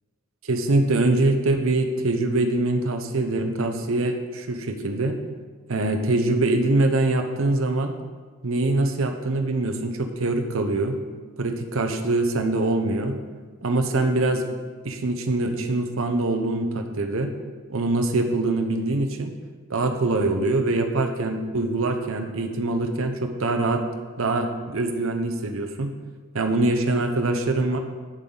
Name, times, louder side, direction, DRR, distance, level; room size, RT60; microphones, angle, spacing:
voice 1, 0.4-5.2 5.7-7.9 8.4-11.0 11.4-13.2 13.6-14.5 14.8-17.3 17.7-19.3 19.7-23.8 24.2-25.9 26.3-27.8, right 2 dB, 60° right, 6 dB, 0.8 m, -23 dB
9.0 x 7.3 x 3.9 m, 1.4 s
head